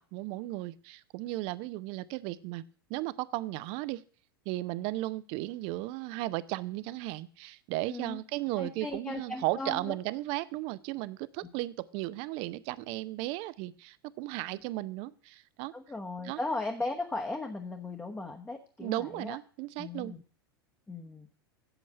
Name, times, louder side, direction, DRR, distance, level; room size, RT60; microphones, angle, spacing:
voice 1, 0.0-2.6 2.9-4.0 4.5-15.7 16.2-16.4 18.8-20.1, right 18 dB, 45° right, 17 dB, 0.6 m, -35 dB
voice 2, 7.9-8.2 8.6-9.9 15.7-19.4 19.8-20.2 20.9-21.3, left 2 dB, 10° left, 4 dB, 1.1 m, -37 dB
8.4 x 8.1 x 7.4 m, 0.43 s
figure-of-eight pair, 90°, 13 cm